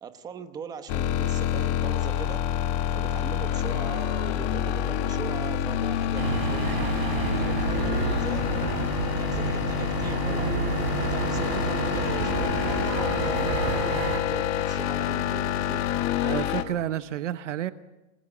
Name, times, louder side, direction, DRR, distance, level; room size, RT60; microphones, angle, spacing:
voice 1, 0.0-2.4 2.9-8.5 9.0-10.6 10.9-15.9, right 6 dB, 10° right, 10 dB, 0.9 m, -40 dB
sound 1, 0.9-16.6, left 10 dB, 25° left, 1.7 m, -27 dB
sound 2, 6.1-14.2, right 8 dB, 40° right, 3.6 m, -30 dB
voice 2, 16.2-17.7, right 11 dB, 60° right, 12 dB, 1.1 m, -30 dB
29.5 x 20.0 x 8.8 m, 1.1 s
supercardioid pair, 170°, 42 cm